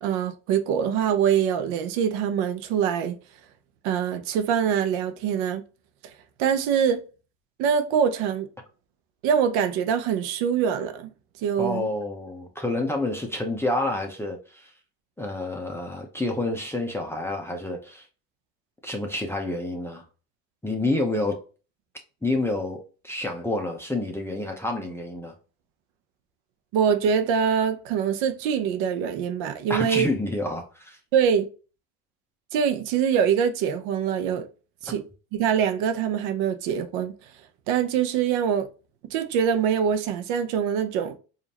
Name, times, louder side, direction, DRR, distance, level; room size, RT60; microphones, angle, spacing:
voice 1, 0.0-3.2 3.8-5.6 6.4-7.0 7.6-8.5 9.2-11.1 11.4-11.9 26.7-30.1 31.1-31.5 32.5-34.5 34.8-35.0 35.3-37.1 37.7-38.7 39.1-41.2, right 8 dB, 80° right, 0.8 m, -24 dB
voice 2, 11.6-14.7 15.2-18.0 18.8-20.0 20.6-21.4 22.2-25.3 29.7-31.0, left 2 dB, 5° left, 0.7 m, -28 dB
5.0 x 2.7 x 2.8 m
cardioid pair, 110°, 46 cm